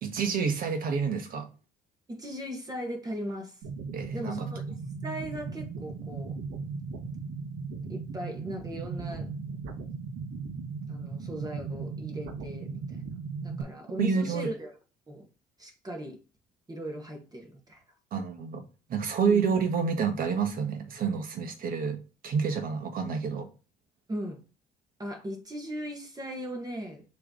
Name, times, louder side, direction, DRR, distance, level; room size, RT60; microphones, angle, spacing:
voice 1, 0.0-1.5 3.9-4.4 14.0-14.5 18.1-18.6 18.9-23.5, right 6 dB, 55° right, 1.5 m, -28 dB
voice 2, 2.1-3.6 4.1-4.6 5.0-6.4 7.9-9.3 10.9-13.1 13.4-14.7 15.1-15.3 15.6-16.2 16.7-17.8 19.3-19.4 24.1-24.4 25.0-27.0, right 1 dB, 25° right, 1.9 m, -38 dB
sound 1, 3.6-13.6, right 4 dB, 85° right, 1.4 m, -37 dB
6.7 x 3.5 x 4.0 m
cardioid pair, 110°, 17 cm